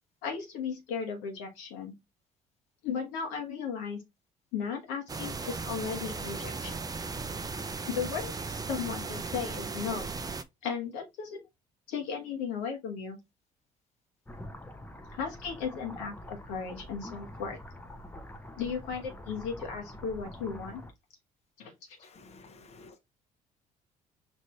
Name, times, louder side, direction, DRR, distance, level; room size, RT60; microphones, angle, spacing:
voice 1, 0.2-1.9 2.8-4.0 4.5-6.8 7.9-10.1 10.6-11.4 11.9-13.2 15.1-17.6 18.6-20.8 21.6-21.7, left 6 dB, 75° left, 1.2 m, -35 dB
sound 1, 5.1-10.4, right 4 dB, 20° right, 0.5 m, -37 dB
sound 2, 14.3-20.9, left 1 dB, 10° left, 0.8 m, -45 dB
voice 2, 22.0-23.0, left 3 dB, 35° left, 0.8 m, -53 dB
5.2 x 2.6 x 3.0 m
hypercardioid pair, 50°, 18 cm